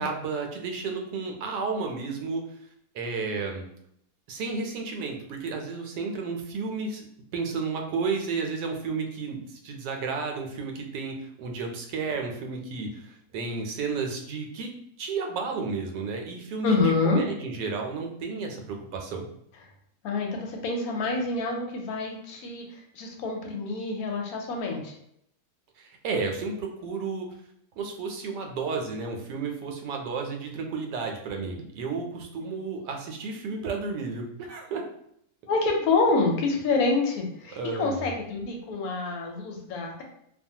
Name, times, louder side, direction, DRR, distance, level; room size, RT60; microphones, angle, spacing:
voice 1, 0.0-2.4 2.9-3.6 4.3-7.0 7.3-14.7 15.0-19.2 25.8-27.3 27.8-34.8 37.6-38.1, right 4 dB, 80° right, 2 dB, 1.2 m, -32 dB
voice 2, 16.6-17.2 20.0-24.9 35.5-40.0, left 3 dB, 70° left, 1 dB, 1.0 m, -27 dB
2.7 x 2.3 x 2.7 m, 0.71 s
omnidirectional pair, 1.8 m